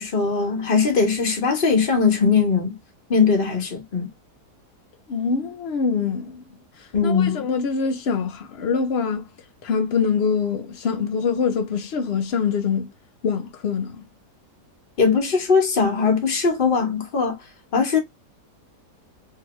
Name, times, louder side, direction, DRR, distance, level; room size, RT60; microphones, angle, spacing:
voice 1, 0.0-2.8 3.1-4.1 6.9-7.5 15.0-17.4 17.7-18.0, left 5 dB, 40° left, 0.9 m, -20 dB
voice 2, 5.1-6.4 6.8-9.3 9.6-12.9 13.2-14.0, left 5 dB, 85° left, 0.5 m, -24 dB
2.9 x 2.6 x 2.9 m
omnidirectional pair, 1.8 m